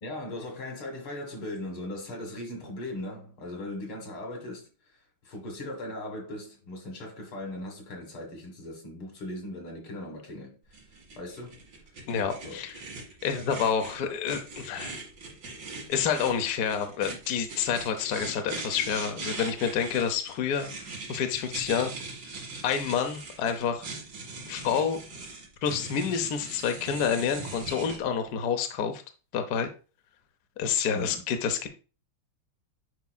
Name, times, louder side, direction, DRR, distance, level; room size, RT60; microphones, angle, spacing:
voice 1, 0.0-4.7 5.2-10.6 11.2-11.6 12.4-12.6 30.9-31.2, left 1 dB, 85° left, 2.7 m, -38 dB
sound 1, 10.7-28.0, right 3 dB, 60° right, 2.6 m, -41 dB
voice 2, 12.1-12.7 13.2-15.0 15.9-20.7 21.1-21.9 22.3-23.9 24.5-25.0 25.6-29.0 29.3-29.7 30.6-31.7, left 7 dB, 60° left, 1.1 m, -28 dB
8.3 x 5.3 x 2.3 m
omnidirectional pair, 2.3 m